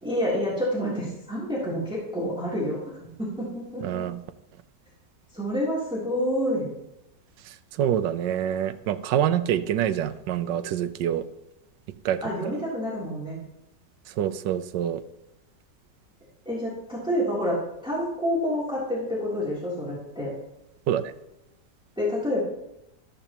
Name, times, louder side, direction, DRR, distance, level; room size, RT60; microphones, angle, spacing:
voice 1, 0.0-4.0 5.3-6.7 12.2-13.4 16.4-20.3 22.0-22.4, equal, 5° right, -7 dB, 3.1 m, -28 dB
voice 2, 3.8-4.2 7.8-11.2 12.0-12.2 14.2-15.0 20.9-21.1, right 10 dB, 80° right, 11 dB, 1.3 m, -26 dB
13.5 x 13.0 x 3.0 m, 0.88 s
omnidirectional pair, 1.9 m